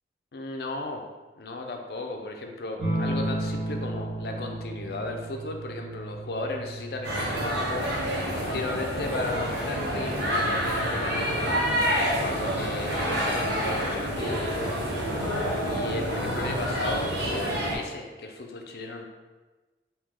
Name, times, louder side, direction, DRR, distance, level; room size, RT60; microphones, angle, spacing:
voice 1, 0.3-1.0 1.4-14.8 15.2-19.0, left 2 dB, 60° left, 3 dB, 0.4 m, -35 dB
sound 1, 2.8-11.9 13.3-13.9, right 1 dB, 25° right, 1.2 m, -35 dB
sound 2, 7.0-17.8, equal, 75° right, 0.8 m, -28 dB
3.2 x 2.8 x 3.6 m, 1.2 s
head